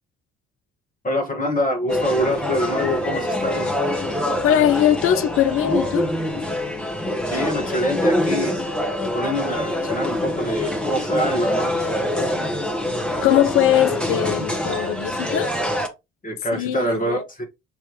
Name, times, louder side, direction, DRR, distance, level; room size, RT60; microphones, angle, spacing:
voice 1, 1.0-3.7 7.3-8.6 9.1-11.8 16.2-17.4, equal, 25° left, 1.5 m, -25 dB
sound 1, 1.9-15.9, left 1 dB, 5° left, 1.3 m, -25 dB
voice 2, 4.4-6.1 13.2-15.5 16.5-17.3, left 11 dB, 40° left, 0.5 m, -20 dB
5.4 x 3.0 x 3.1 m
figure-of-eight pair, 45°, 34 cm